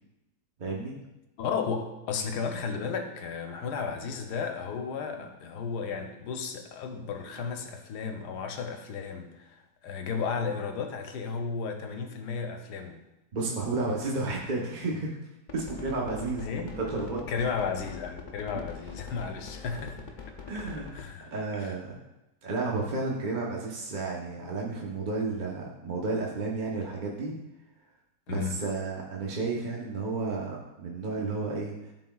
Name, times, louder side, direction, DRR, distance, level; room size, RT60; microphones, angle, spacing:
voice 1, 0.6-1.0 13.3-15.1 15.5-17.2 18.5-18.6 20.5-20.9 21.3-22.0 22.4-27.3 28.3-31.9, right 3 dB, 40° right, -2 dB, 0.7 m, -32 dB
voice 2, 1.4-13.0 16.4-16.8 17.3-20.1 20.9-21.8 28.3-28.6, left 5 dB, 75° left, 5 dB, 1.2 m, -34 dB
sound 1, 15.5-21.1, left 6 dB, 55° left, 0.5 m, -42 dB
12.5 x 4.1 x 2.3 m, 0.95 s
omnidirectional pair, 1.8 m